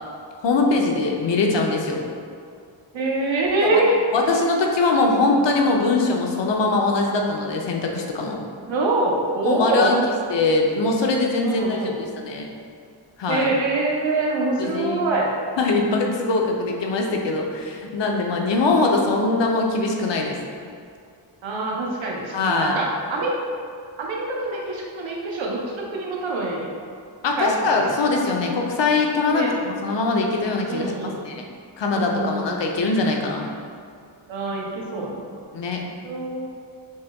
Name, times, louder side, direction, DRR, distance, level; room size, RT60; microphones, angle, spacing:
voice 1, 0.4-2.0 3.6-3.8 4.1-8.4 9.4-10.0 10.3-12.5 13.2-13.5 14.6-15.1 15.6-20.4 22.3-22.8 27.2-30.9 31.2-31.4 31.8-33.5 35.5-35.8, left 3 dB, 70° left, 1 dB, 0.7 m, -22 dB
voice 2, 2.9-3.9 8.6-10.0 11.4-11.9 13.3-15.3 21.4-23.3 24.0-26.7 27.4-27.9 29.3-29.6 30.7-31.2 31.9-32.9 34.3-35.2 36.0-36.5, right 2 dB, 90° right, -2 dB, 0.8 m, -25 dB
6.3 x 2.2 x 3.4 m, 2.3 s
wide cardioid pair, 130°, 44 cm